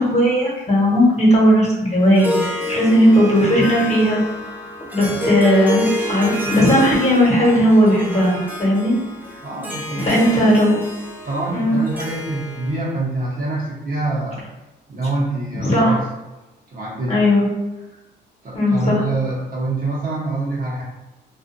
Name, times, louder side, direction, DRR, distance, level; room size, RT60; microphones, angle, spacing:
voice 1, 0.0-4.2 4.9-5.8 6.1-8.9 9.9-10.7 11.5-11.7 15.6-15.9 17.1-17.4 18.5-19.0, equal, 35° left, -5 dB, 1.2 m, -16 dB
Harp, 2.0-12.9, left 1 dB, 10° right, 0.6 m, -29 dB
voice 2, 9.4-10.6 11.2-14.4 14.9-16.0 16.7-17.2 18.4-20.8, right 2 dB, 45° right, -5 dB, 0.9 m, -25 dB
2.4 x 2.3 x 2.6 m, 1.1 s
cardioid pair, 90°, 20 cm